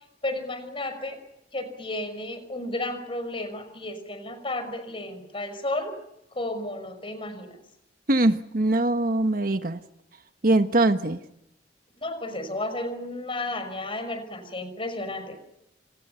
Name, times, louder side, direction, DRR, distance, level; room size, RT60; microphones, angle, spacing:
voice 1, 0.2-1.2 1.5-5.9 6.3-7.6 12.0-15.4, left 2 dB, 30° left, 10 dB, 5.7 m, -33 dB
voice 2, 8.1-9.8 10.4-11.2, right 2 dB, 50° right, 8 dB, 1.3 m, -22 dB
29.0 x 27.0 x 5.7 m, 0.82 s
head